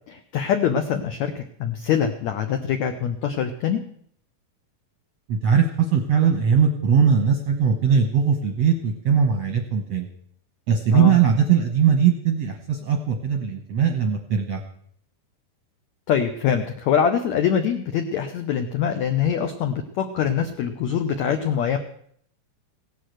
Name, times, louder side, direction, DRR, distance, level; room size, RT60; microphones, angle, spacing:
voice 1, 0.1-3.8 10.9-11.2 16.1-21.8, left 8 dB, 80° left, 7 dB, 1.6 m, -24 dB
voice 2, 5.3-10.1 10.7-14.6, right 7 dB, 70° right, 5 dB, 1.6 m, -20 dB
17.0 x 8.4 x 7.8 m, 0.65 s
omnidirectional pair, 4.4 m